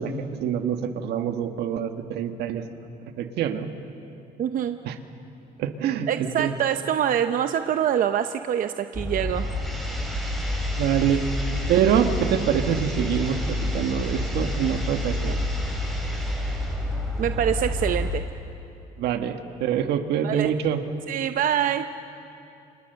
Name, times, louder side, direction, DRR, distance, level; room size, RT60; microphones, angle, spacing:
voice 1, 0.0-2.9 3.2-3.7 4.8-5.0 5.6-6.5 10.7-11.2 11.7-15.4 19.0-20.8, right 8 dB, 80° right, 7 dB, 1.6 m, -25 dB
voice 2, 4.4-4.8 6.1-9.5 17.2-18.2 20.2-20.5 21.1-21.9, right 9 dB, 55° right, 8 dB, 0.8 m, -25 dB
sound 1, 8.9-18.1, left 1 dB, ahead, 4.9 m, -28 dB
29.5 x 26.0 x 6.8 m, 2.7 s
cardioid pair, 110°, 17 cm